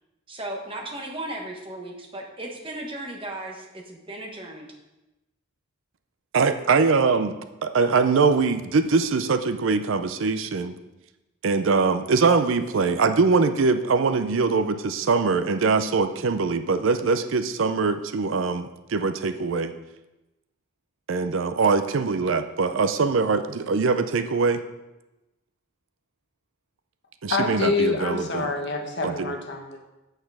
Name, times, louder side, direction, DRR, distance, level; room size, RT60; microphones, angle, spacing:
voice 1, 0.3-4.7, right 1 dB, 25° right, 1 dB, 1.2 m, -36 dB
voice 2, 6.3-10.7 11.4-19.7 21.1-24.6 27.2-28.5 29.0-29.3, right 4 dB, 65° right, 10 dB, 0.5 m, -22 dB
voice 3, 27.3-29.9, left 3 dB, 55° left, 2 dB, 1.3 m, -26 dB
8.0 x 6.6 x 4.8 m, 0.99 s
head